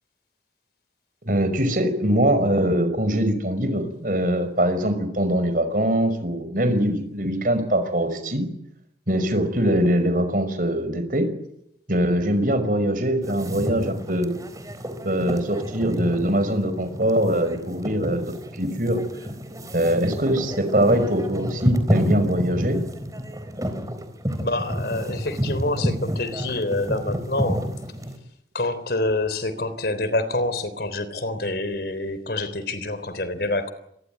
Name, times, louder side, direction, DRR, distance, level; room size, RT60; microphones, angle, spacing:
voice 1, 1.2-8.5 9.1-11.3 11.9-14.3 15.0-19.0 19.7-22.8, right 1 dB, 50° right, 5.5 m, -22 dB
sound 1, 13.2-28.2, equal, 20° right, 4.0 m, -29 dB
voice 2, 24.4-27.6 28.5-33.7, left 2 dB, 60° left, 3.5 m, -27 dB
27.0 x 23.0 x 9.4 m
head